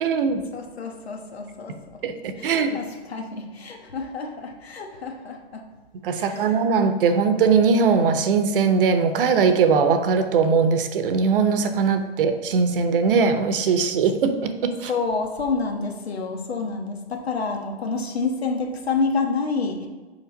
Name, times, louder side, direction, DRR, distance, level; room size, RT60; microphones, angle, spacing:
voice 1, 0.0-0.4 2.0-2.8 6.0-14.9, right 5 dB, 60° right, 9 dB, 0.9 m, -20 dB
voice 2, 0.5-2.0 2.4-5.7 6.1-6.6 14.9-19.9, left 4 dB, 85° left, 3 dB, 1.4 m, -28 dB
7.4 x 5.5 x 3.9 m, 1.3 s
hypercardioid pair, 145°, 31 cm